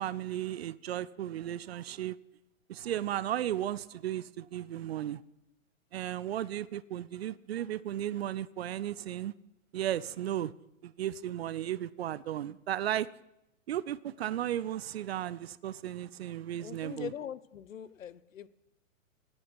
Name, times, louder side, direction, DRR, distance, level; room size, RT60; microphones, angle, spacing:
voice 1, 0.0-2.2 2.7-5.2 5.9-9.3 9.7-10.5 10.8-13.1 13.7-17.1, right 12 dB, 50° right, 0.5 m, -35 dB
voice 2, 16.6-18.5, left 9 dB, 70° left, 0.7 m, -42 dB
18.0 x 6.3 x 6.1 m
figure-of-eight pair, 120°, 41 cm